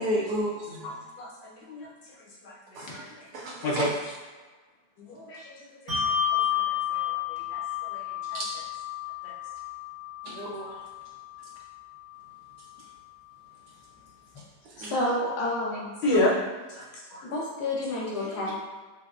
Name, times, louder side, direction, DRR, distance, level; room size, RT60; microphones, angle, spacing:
voice 1, 0.0-0.9 2.8-2.9 3.3-3.9 8.3-8.4 10.3-10.7 14.8-14.9, equal, 75° right, -2 dB, 1.0 m, -31 dB
voice 2, 0.8-1.9 2.4-3.1 3.6-4.1 5.0-7.2 7.5-8.0 8.3-8.5 9.2-9.3 16.0-16.4 16.7-16.9 17.1-17.2 17.9-18.5, left 1 dB, 85° left, -5 dB, 1.6 m, -31 dB
Bell, 5.9-12.7, left 9 dB, 40° right, 0.7 m, -32 dB
voice 3, 14.8-15.9 17.2-18.5, left 1 dB, 65° left, -4 dB, 1.4 m, -30 dB
5.5 x 2.0 x 2.4 m, 1.3 s
omnidirectional pair, 1.9 m